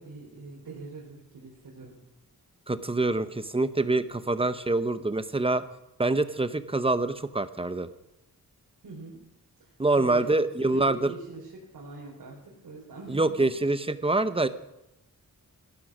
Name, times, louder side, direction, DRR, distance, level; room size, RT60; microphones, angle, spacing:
voice 1, 0.0-2.0 8.8-9.2 9.6-13.5, right 3 dB, 75° right, -4 dB, 4.1 m, -44 dB
voice 2, 2.7-5.6 6.0-7.9 9.8-11.1 13.1-14.5, right 2 dB, 15° right, 12 dB, 0.8 m, -25 dB
16.0 x 11.5 x 6.1 m, 0.87 s
wide cardioid pair, 115°, 36 cm